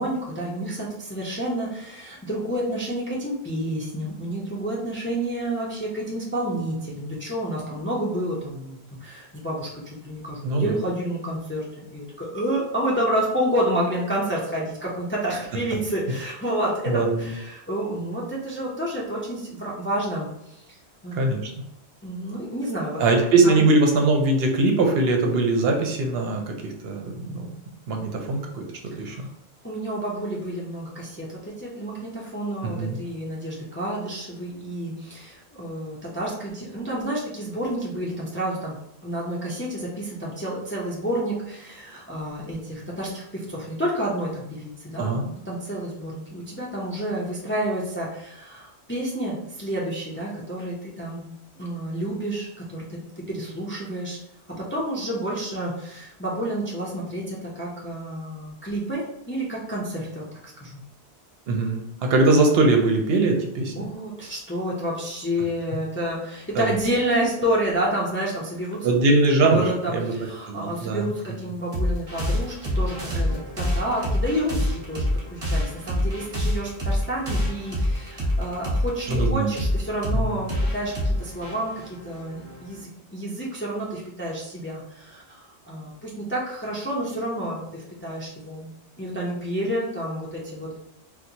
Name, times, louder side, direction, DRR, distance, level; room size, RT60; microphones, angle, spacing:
voice 1, 0.0-20.8 21.0-21.4 22.0-23.0 23.4-23.6 28.9-29.3 29.6-38.8 39.0-45.2 45.5-51.2 51.6-54.2 54.5-60.8 63.7-68.9 69.4-88.7 89.0-90.8, right 1 dB, 15° left, -4 dB, 0.4 m, -29 dB
voice 2, 10.4-10.8 16.9-17.3 21.1-21.5 23.0-27.5 27.9-28.7 29.0-29.3 32.8-33.0 45.0-45.2 61.5-63.9 66.6-66.7 68.8-70.1 70.5-71.1 79.1-79.5 80.1-80.4, right 2 dB, 70° right, 2 dB, 0.8 m, -21 dB
sound 1, 71.7-82.8, left 1 dB, 35° right, 0.9 m, -26 dB
4.3 x 2.1 x 2.7 m, 0.84 s
omnidirectional pair, 1.1 m